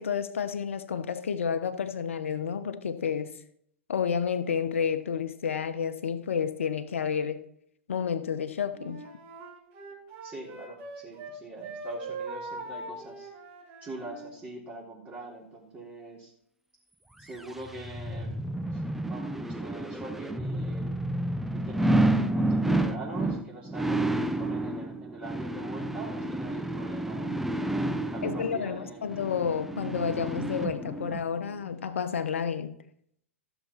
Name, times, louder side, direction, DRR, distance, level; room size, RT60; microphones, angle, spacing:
voice 1, 0.0-3.3 3.9-7.4 7.9-9.0 28.2-32.8, left 7 dB, 70° left, 1.0 m, -30 dB
Wind instrument woodwind instrument, 8.7-11.3 11.6-14.4, right 3 dB, 40° right, 3.7 m, -41 dB
voice 2, 10.2-13.3 13.8-16.3 17.2-18.4 18.7-21.0 21.5-29.0, right 2 dB, 20° right, 3.4 m, -43 dB
sound 1, 17.3-31.2 31.7-31.8, right 1 dB, 5° right, 0.7 m, -30 dB
14.5 x 7.1 x 4.5 m
figure-of-eight pair, 105°, 7 cm